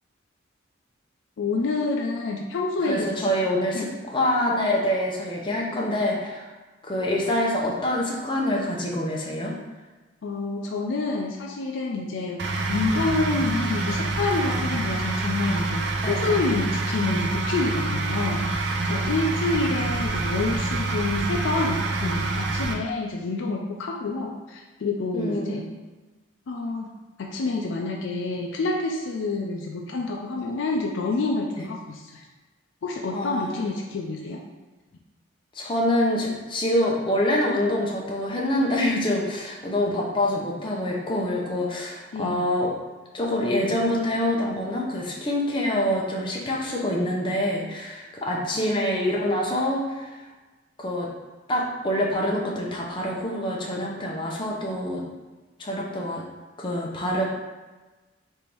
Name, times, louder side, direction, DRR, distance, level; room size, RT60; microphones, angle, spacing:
voice 1, 1.4-3.3 3.7-3.9 10.2-25.6 26.5-26.9 27.2-32.2 32.8-34.4 42.1-42.5 48.6-48.8, left 3 dB, 70° left, 0 dB, 0.4 m, -28 dB
voice 2, 2.8-6.5 6.8-9.5 16.0-16.4 25.1-25.6 31.5-31.7 33.1-33.6 35.5-42.7 43.1-50.2 50.8-51.1 51.5-55.0 55.6-56.2 56.6-57.2, left 1 dB, 25° left, -2 dB, 0.6 m, -26 dB
sound 1, 12.4-22.7, right 2 dB, 60° right, 0.4 m, -27 dB
3.3 x 2.6 x 4.4 m, 1.2 s
head